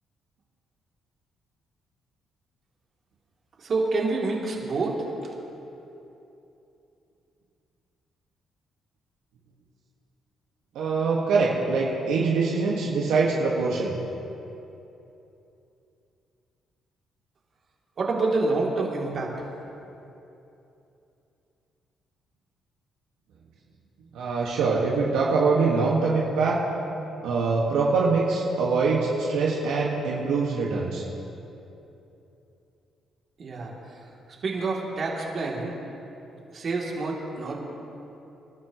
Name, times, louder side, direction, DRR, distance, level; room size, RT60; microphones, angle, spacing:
voice 1, 3.6-5.0 18.0-19.3 33.4-33.7 34.4-35.7 36.5-37.6, right 3 dB, 50° right, -3 dB, 2.9 m, -27 dB
voice 2, 10.8-13.9 24.1-26.6 27.2-31.0, right 4 dB, 85° right, -4 dB, 1.7 m, -24 dB
27.0 x 12.0 x 3.1 m, 2.9 s
cardioid pair, 90°, 0 cm